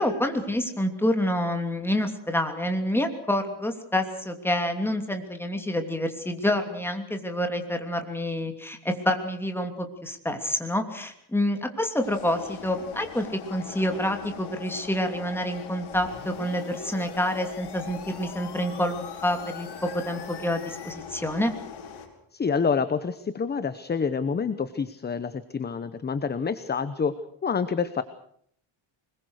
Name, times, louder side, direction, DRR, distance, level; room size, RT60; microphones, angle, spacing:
voice 1, 0.0-21.5, left 1 dB, 5° left, 5 dB, 2.9 m, -28 dB
sound 1, 12.0-22.1, left 8 dB, 80° left, 5.2 m, -41 dB
sound 2, 15.9-20.9, left 7 dB, 55° left, 3.7 m, -44 dB
voice 2, 22.3-27.2 27.4-28.0, left 5 dB, 20° left, 13 dB, 0.9 m, -27 dB
25.0 x 21.5 x 6.5 m, 0.66 s
cardioid pair, 140°, 48 cm